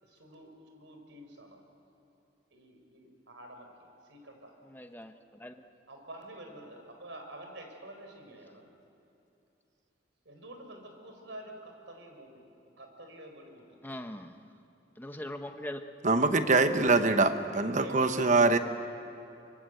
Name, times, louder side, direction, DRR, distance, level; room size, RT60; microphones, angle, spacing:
voice 1, 0.0-1.6 2.5-4.5 5.9-8.7 10.2-12.4 12.8-13.8 17.5-18.4, right 1 dB, 80° right, 4 dB, 4.5 m, -48 dB
voice 2, 4.6-5.5 13.8-14.4 15.0-15.8, left 1 dB, 10° left, 6 dB, 1.1 m, -41 dB
voice 3, 16.0-18.6, right 3 dB, 40° right, 9 dB, 1.1 m, -24 dB
24.5 x 24.0 x 7.9 m, 2.8 s
head